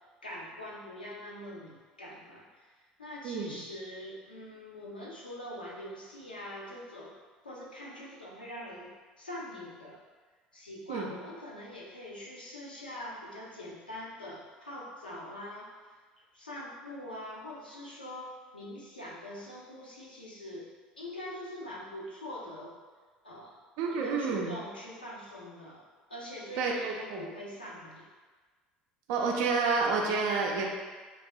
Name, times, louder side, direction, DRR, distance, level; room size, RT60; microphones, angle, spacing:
voice 1, 0.2-7.2 7.4-10.0 10.5-16.0 16.3-22.8 23.2-23.6 23.9-25.8 26.1-28.1, left 1 dB, 90° left, -5 dB, 0.5 m, -44 dB
voice 2, 3.2-3.6 10.9-11.1 23.8-24.6 26.6-27.2 29.1-30.6, right 4 dB, 60° right, 0 dB, 0.4 m, -29 dB
3.3 x 2.3 x 2.3 m, 1.4 s
figure-of-eight pair, 60°, 5 cm